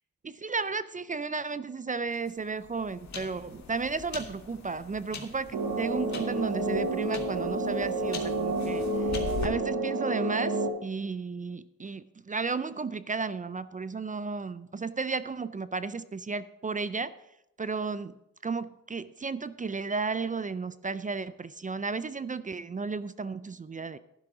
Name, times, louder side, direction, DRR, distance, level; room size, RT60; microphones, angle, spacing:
voice 1, 0.2-8.9 9.4-17.1 17.6-18.1 18.4-24.0, right 4 dB, 25° right, 15 dB, 0.4 m, -33 dB
sound 1, 2.1-9.5, left 4 dB, 55° left, 2.0 m, -42 dB
sound 2, 5.5-10.7, right 2 dB, 75° right, 1.4 m, -30 dB
11.5 x 10.5 x 3.8 m, 0.85 s
cardioid pair, 85°, 33 cm